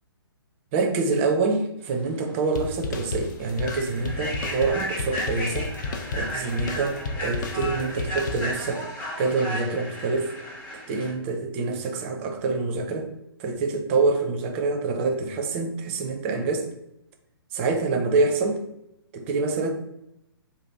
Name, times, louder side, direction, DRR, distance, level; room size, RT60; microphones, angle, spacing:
voice 1, 0.7-5.7 6.1-8.8 9.2-10.3 10.9-13.1 13.4-16.7 17.5-18.6 19.1-19.7, right 3 dB, 30° right, 4 dB, 0.5 m, -26 dB
Human voice / Train, 2.2-2.4 2.8-3.0 3.5-11.1, equal, 10° left, 0.7 m, -34 dB
sound 1, 2.5-8.9, left 3 dB, 45° left, 0.4 m, -33 dB
2.7 x 2.5 x 3.5 m, 0.81 s
hypercardioid pair, 140°, 14 cm